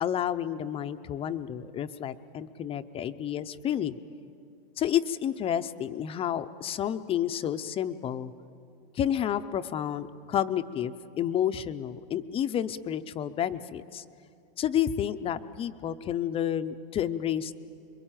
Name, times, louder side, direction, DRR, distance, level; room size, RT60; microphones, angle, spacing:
voice 1, 0.0-4.0 4.8-8.3 8.9-14.0 14.6-17.5, left 10 dB, 20° left, 10 dB, 0.6 m, -30 dB
26.5 x 22.5 x 9.0 m, 2.6 s
supercardioid pair, 140°, 30 cm